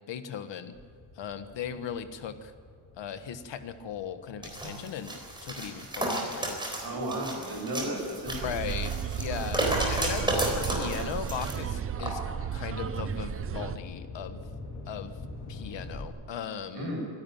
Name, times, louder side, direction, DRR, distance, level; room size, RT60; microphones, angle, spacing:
voice 1, 0.1-0.8 1.1-2.5 3.0-6.6 8.3-12.2 12.5-14.4 14.9-15.2 15.5-16.9, left 8 dB, 70° left, 10 dB, 1.4 m, -38 dB
sound 1, 0.7-7.5 8.1-16.0, left 3 dB, 35° left, 3.2 m, -46 dB
sound 2, 4.4-11.6 12.0-12.1, right 1 dB, 10° right, 3.9 m, -32 dB
voice 2, 6.8-8.5 16.7-17.0, right 1 dB, 50° right, -2 dB, 7.5 m, -34 dB
sound 3, 8.3-13.8, right 8 dB, 30° right, 0.5 m, -34 dB
25.0 x 11.5 x 9.3 m, 2.1 s
wide cardioid pair, 175°, 46 cm